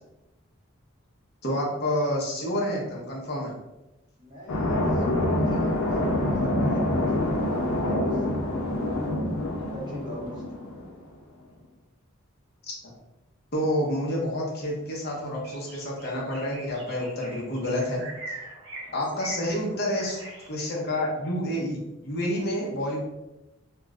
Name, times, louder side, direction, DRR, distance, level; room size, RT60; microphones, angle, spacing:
voice 1, 1.4-3.5 12.8-12.9 13.5-18.0 18.9-20.2 20.5-23.0, equal, 45° left, -3 dB, 0.7 m, -28 dB
voice 2, 4.2-8.9 9.6-10.4 18.8-19.3, left 1 dB, 20° right, -5 dB, 0.6 m, -37 dB
sound 1, 4.5-10.9, left 1 dB, 85° left, 0.6 m, -26 dB
sound 2, 14.6-14.7 15.1-20.5, right 2 dB, 80° right, 0.9 m, -43 dB
2.3 x 2.0 x 3.5 m, 0.96 s
head